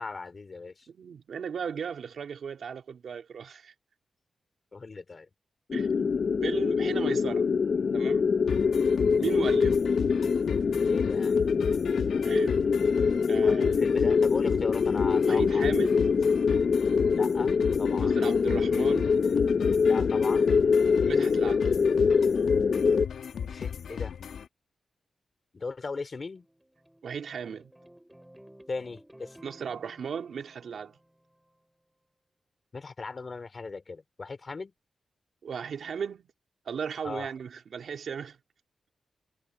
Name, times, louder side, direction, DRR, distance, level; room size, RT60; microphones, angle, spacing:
voice 1, 0.0-0.9 4.7-5.3 9.2-9.4 10.9-11.4 13.4-15.7 17.1-17.5 17.8-18.2 19.8-20.5 23.5-24.1 25.5-26.5 28.7-29.4 32.7-34.7 37.0-37.3, left 4 dB, 45° left, 3.0 m, -38 dB
voice 2, 0.9-3.7 5.7-6.1 6.4-7.5 7.9-8.3 9.2-9.8 12.2-12.6 13.3-13.8 15.2-16.1 18.0-19.2 21.1-21.7 27.0-27.7 29.4-31.0 35.4-36.3 36.6-38.4, right 7 dB, 75° right, 3.1 m, -36 dB
sound 1, 5.7-23.1, left 5 dB, 60° left, 0.6 m, -24 dB
sound 2, 8.5-24.5, left 7 dB, 85° left, 1.1 m, -37 dB
sound 3, 26.1-31.5, right 1 dB, 5° right, 4.1 m, -55 dB
cardioid pair, 85°, 0 cm